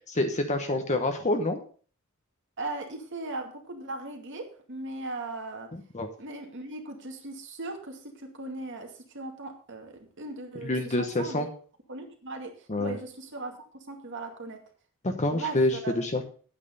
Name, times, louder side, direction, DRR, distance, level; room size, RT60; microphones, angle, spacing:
voice 1, 0.1-1.6 5.9-6.1 10.6-11.5 12.7-13.0 15.0-16.2, left 2 dB, 35° left, 5 dB, 1.0 m, -27 dB
voice 2, 2.6-5.7 6.2-11.5 11.9-14.6 15.3-16.2, right 2 dB, 60° right, 3 dB, 2.3 m, -38 dB
9.2 x 8.8 x 5.4 m, 0.43 s
head